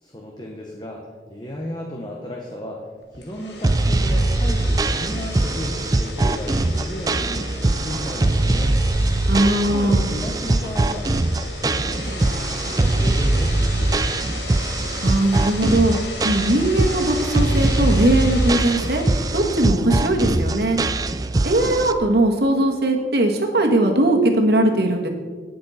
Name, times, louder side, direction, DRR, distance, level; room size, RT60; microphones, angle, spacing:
voice 1, 0.0-2.8 3.1-8.8 9.4-14.3, left 1 dB, 25° left, -1 dB, 1.2 m, -34 dB
sound 1, 3.1-19.7, left 3 dB, 80° left, 1.9 m, -35 dB
sound 2, 3.6-21.9, right 2 dB, 20° right, 0.3 m, -22 dB
voice 2, 9.3-10.0 15.0-15.9 16.2-19.0 19.3-20.8 21.4-25.1, right 1 dB, 65° right, 2 dB, 1.7 m, -19 dB
18.0 x 6.7 x 4.2 m, 1.5 s
head